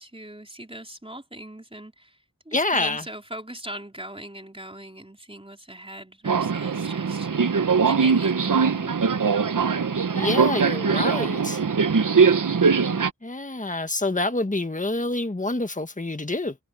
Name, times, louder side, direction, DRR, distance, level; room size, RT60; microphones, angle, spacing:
voice 1, 0.0-2.2 2.5-7.6 7.9-8.9, right 1 dB, 15° right, 3.8 m, -40 dB
voice 2, 2.5-3.0 10.1-11.6 12.9-16.6, left 2 dB, 25° left, 1.5 m, -27 dB
Subway metro underground, 6.3-13.1, right 5 dB, 70° right, 0.9 m, -21 dB
wide cardioid pair, 45°, 33 cm